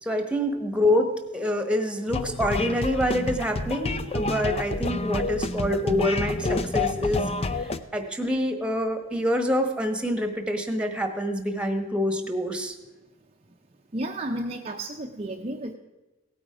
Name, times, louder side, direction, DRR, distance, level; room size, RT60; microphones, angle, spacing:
voice 1, 0.0-12.7, equal, 5° right, 6 dB, 1.2 m, -26 dB
sound 1, 2.1-7.8, left 3 dB, 30° left, 0.5 m, -28 dB
voice 2, 13.9-15.7, right 1 dB, 30° right, 2 dB, 0.6 m, -32 dB
17.0 x 9.0 x 4.9 m, 1.1 s
head